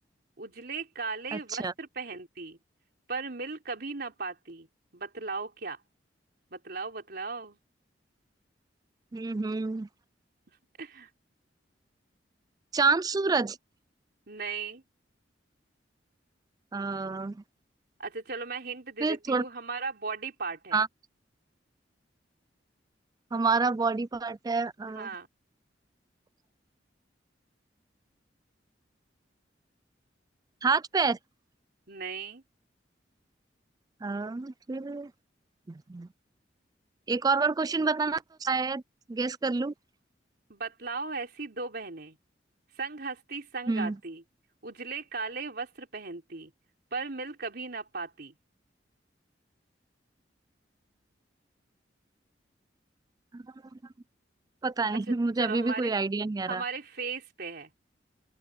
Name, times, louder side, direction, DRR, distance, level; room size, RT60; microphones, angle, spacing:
voice 1, 0.4-2.6 3.1-4.7 4.9-5.8 6.5-7.6 10.8-11.1 14.3-14.8 18.0-20.8 24.8-25.3 31.9-32.4 40.5-42.2 42.8-44.2 44.6-46.5 46.9-48.3 55.4-55.9 56.5-57.7, right 4 dB, 60° right, 3.6 m, -37 dB
voice 2, 1.3-1.7 9.1-9.9 12.7-13.6 16.7-17.4 19.0-19.4 20.7-20.9 23.3-25.1 30.6-31.2 34.0-35.1 35.7-36.1 37.1-38.8 39.1-39.7 43.7-44.0 53.3-53.4 54.6-56.6, right 4 dB, 20° right, 0.4 m, -28 dB
open air
head